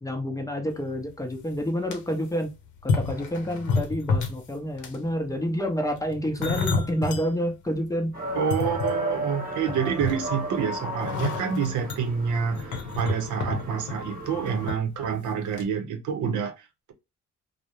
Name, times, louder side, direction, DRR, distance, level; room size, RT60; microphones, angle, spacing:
voice 1, 0.0-2.5 2.8-8.2, equal, 10° left, 0.6 m, -28 dB
sound 1, 1.0-1.1 1.6-2.0 2.8-4.5 4.8-5.1 5.9-7.3 7.8-7.9 8.3-9.3 9.7-10.5 11.0-14.8 15.1-15.3 15.6-15.7, left 4 dB, 80° left, 0.7 m, -29 dB
sound 2, 8.1-14.8, right 1 dB, 30° right, 1.1 m, -34 dB
voice 2, 8.3-16.9, right 7 dB, 80° right, 0.6 m, -28 dB
2.3 x 2.0 x 2.8 m
cardioid pair, 90°, 30 cm